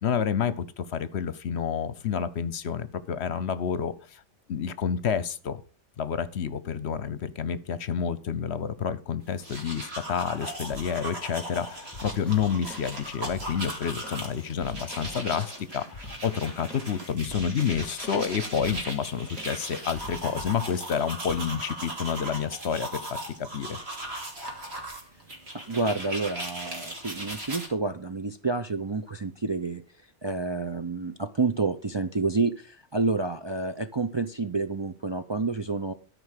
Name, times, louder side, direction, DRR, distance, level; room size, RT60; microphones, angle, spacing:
voice 1, 0.0-4.2 4.5-5.6 6.0-23.8, left 7 dB, 65° left, 16 dB, 1.0 m, -29 dB
sound 1, 9.3-27.7, right 1 dB, 60° right, 2.8 m, -38 dB
sound 2, 10.7-21.4, left 1 dB, ahead, 2.6 m, -46 dB
voice 2, 25.7-29.8 30.2-35.9, right 3 dB, 35° right, 7 dB, 0.5 m, -29 dB
13.0 x 5.2 x 6.5 m, 0.38 s
omnidirectional pair, 1.2 m